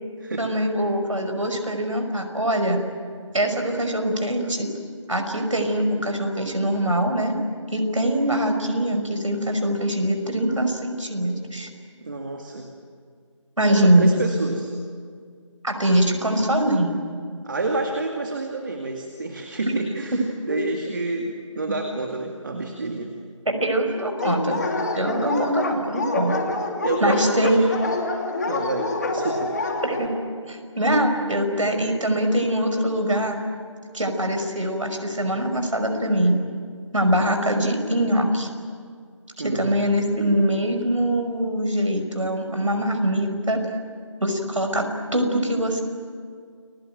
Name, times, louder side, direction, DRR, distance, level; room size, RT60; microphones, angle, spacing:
voice 1, 0.4-2.8 3.3-4.7 5.1-7.4 7.7-11.7 13.6-14.1 15.6-17.0 20.5-20.6 23.5-24.6 25.0-26.4 27.0-27.6 29.8-30.1 30.5-33.4 33.9-36.4 36.9-38.5 39.4-43.6 44.2-44.9 45.1-45.8, right 1 dB, 75° right, 5 dB, 5.7 m, -23 dB
voice 2, 12.0-12.7 13.7-14.7 17.4-20.2 20.5-23.1 26.8-27.7 28.5-29.5 39.4-39.8, right 2 dB, 40° right, 3 dB, 2.2 m, -29 dB
Dog, 24.2-30.1, left 2 dB, 35° left, 2.5 m, -27 dB
29.5 x 21.5 x 9.1 m, 2.1 s
figure-of-eight pair, 170°, 16 cm